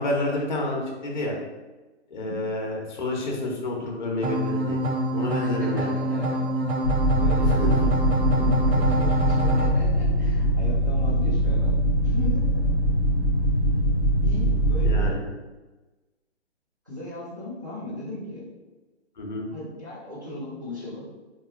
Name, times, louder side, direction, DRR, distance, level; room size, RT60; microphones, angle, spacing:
voice 1, 0.0-1.4 2.1-4.8 5.1-6.0 7.6-7.7 14.8-15.2 19.2-19.5, left 2 dB, 45° left, -1 dB, 0.7 m, -29 dB
sound 1, 4.2-9.7, equal, 65° right, 0.6 m, -26 dB
voice 2, 5.4-6.5 7.1-11.7 12.0-12.6 14.2-15.2 16.9-18.5 19.5-21.0, left 2 dB, 20° right, -10 dB, 0.5 m, -36 dB
sound 2, 6.8-15.1, right 1 dB, 40° right, 1.0 m, -22 dB
2.9 x 2.9 x 2.4 m, 1.2 s
hypercardioid pair, 175°, 34 cm